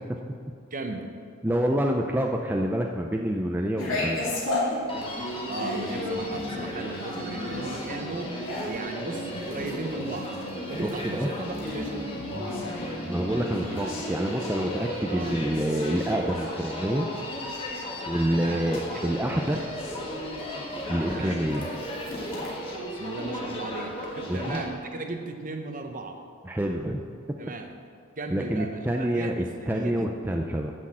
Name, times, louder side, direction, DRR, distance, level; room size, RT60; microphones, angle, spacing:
voice 1, 0.7-1.1 5.5-8.4 8.6-10.3 10.7-12.0 15.1-15.3 18.3-19.7 21.0-21.4 22.9-26.2 27.4-27.7 28.2-30.1, right 2 dB, 40° right, 5 dB, 0.9 m, -36 dB
voice 2, 1.4-4.4 10.8-11.3 13.0-17.1 18.1-19.6 20.9-21.7 24.3-24.6 26.4-27.0 28.3-30.7, right 1 dB, 10° right, 1 dB, 0.4 m, -27 dB
sound 1, 3.8-22.5, left 2 dB, 65° left, 2.6 m, -36 dB
Human voice, 4.9-24.7, equal, 25° left, 1.7 m, -35 dB
9.7 x 6.3 x 7.5 m, 2.2 s
head